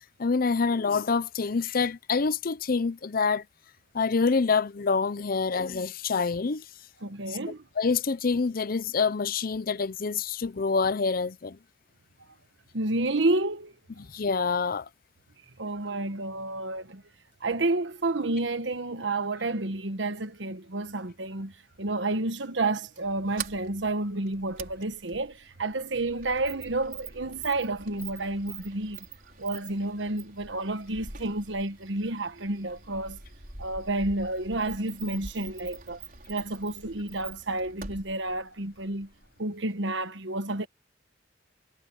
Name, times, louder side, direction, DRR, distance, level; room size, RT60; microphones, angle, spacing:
voice 1, 0.2-3.4 3.9-6.6 7.8-11.6 14.1-14.9, left 4 dB, 50° left, 0.6 m, -26 dB
voice 2, 7.0-7.6 12.7-13.7 15.6-17.0 17.4-21.5 21.8-29.1 29.4-33.2 33.6-36.0 36.3-39.1 39.4-40.7, right 2 dB, 70° right, 1.3 m, -30 dB
Sliding door, 23.0-39.4, right 5 dB, 50° right, 5.0 m, -45 dB
head